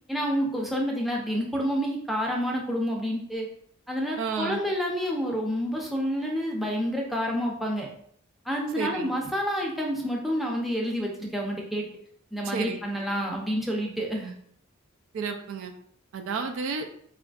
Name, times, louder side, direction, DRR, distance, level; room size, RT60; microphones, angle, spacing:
voice 1, 0.1-3.5 3.9-7.9 8.4-11.9 12.3-14.3, equal, ahead, -2 dB, 0.5 m, -28 dB
voice 2, 4.2-4.6 8.8-9.1 12.4-12.8 13.1-13.2 15.1-15.7 16.1-16.9, right 5 dB, 65° right, 5 dB, 0.4 m, -31 dB
4.3 x 2.4 x 2.3 m, 0.65 s
head